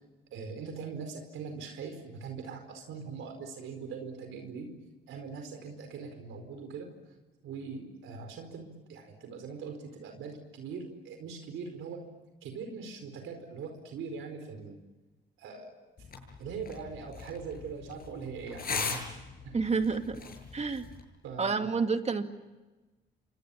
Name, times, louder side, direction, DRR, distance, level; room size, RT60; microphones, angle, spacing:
voice 1, 0.3-4.7 5.1-6.9 7.4-12.0 12.4-14.8 15.4-15.7 16.4-19.1 19.4-19.5 20.2-20.3 21.2-21.8, right 5 dB, 80° right, 6 dB, 4.7 m, -41 dB
sound 1, 16.0-21.0, left 5 dB, 50° left, 7.6 m, -40 dB
voice 2, 19.5-20.2 20.5-20.8 21.4-22.3, right 4 dB, 35° right, 7 dB, 2.3 m, -29 dB
28.5 x 25.0 x 7.1 m, 1.2 s
cardioid pair, 90°, 20 cm